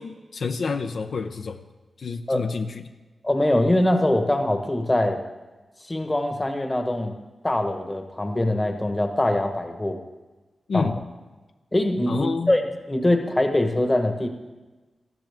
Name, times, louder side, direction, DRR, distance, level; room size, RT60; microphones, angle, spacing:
voice 1, 0.0-1.6 2.0-2.9 10.7-11.0 12.1-12.6, left 4 dB, 70° left, 7 dB, 0.6 m, -28 dB
voice 2, 3.2-5.2 5.8-7.1 7.4-10.0 10.7-10.9 11.7-12.6 12.9-14.3, left 1 dB, 20° left, 5 dB, 1.1 m, -23 dB
18.5 x 13.5 x 3.5 m, 1.2 s
wide cardioid pair, 135°, 0 cm